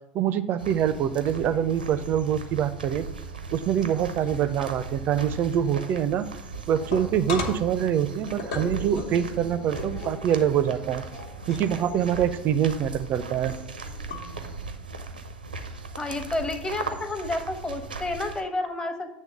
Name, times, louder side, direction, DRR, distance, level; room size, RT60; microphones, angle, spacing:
voice 1, 0.1-3.1 3.5-6.3 6.7-11.0 11.5-13.5, right 9 dB, 40° right, 12 dB, 0.5 m, -25 dB
sound 1, 0.6-18.4, right 3 dB, 85° right, 0.6 m, -38 dB
sound 2, 6.3-14.5, left 3 dB, 60° left, 1.2 m, -39 dB
voice 2, 16.0-19.1, left 2 dB, 15° left, 7 dB, 1.0 m, -30 dB
8.5 x 3.3 x 6.4 m, 0.87 s
figure-of-eight pair, 75°, 5 cm